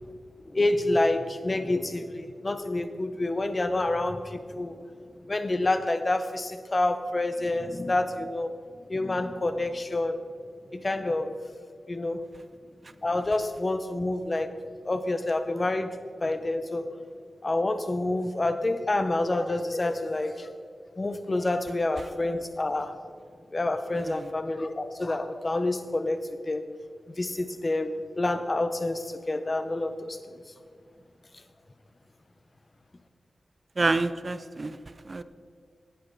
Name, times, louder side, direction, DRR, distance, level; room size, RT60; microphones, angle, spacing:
voice 1, 0.5-4.8 5.2-8.5 8.9-10.2 10.7-11.3 11.9-12.2 13.0-14.5 14.8-15.9 16.2-16.9 17.4-20.6 21.0-23.0 23.5-26.6 27.1-30.2, left 2 dB, 30° left, 9 dB, 0.8 m, -28 dB
voice 2, 23.9-24.3 33.8-34.8 35.1-35.2, right 3 dB, 35° right, 13 dB, 0.5 m, -28 dB
18.5 x 8.7 x 4.1 m, 2.3 s
wide cardioid pair, 115°, 0 cm